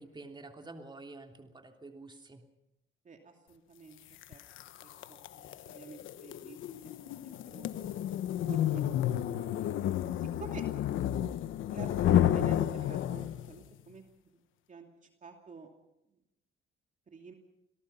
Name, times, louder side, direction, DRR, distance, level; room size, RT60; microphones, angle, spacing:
voice 1, 0.0-2.4, right 3 dB, 25° right, 3 dB, 3.2 m, -48 dB
voice 2, 3.0-4.0 4.3-4.4 4.8-6.6 6.8-7.9 8.4-9.7 10.2-11.2 11.7-14.4 14.7-15.7 17.1-17.3, right 4 dB, 40° right, 3 dB, 2.7 m, -48 dB
sound 1, 4.2-13.6, left 11 dB, 80° left, 1.1 m, -31 dB
27.0 x 18.5 x 5.7 m, 0.87 s
cardioid pair, 90°, 20 cm